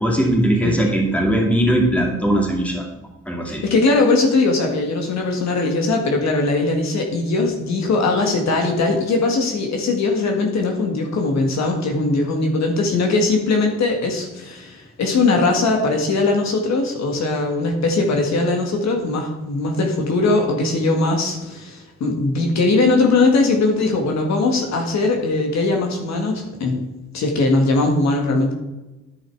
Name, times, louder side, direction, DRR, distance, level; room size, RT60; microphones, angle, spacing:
voice 1, 0.0-2.8 3.3-3.6, right 1 dB, 5° left, 0 dB, 2.6 m, -19 dB
voice 2, 3.5-26.8 27.1-28.5, left 3 dB, 65° left, 2 dB, 1.9 m, -20 dB
10.5 x 5.7 x 4.7 m, 1.0 s
cardioid pair, 90°, 30 cm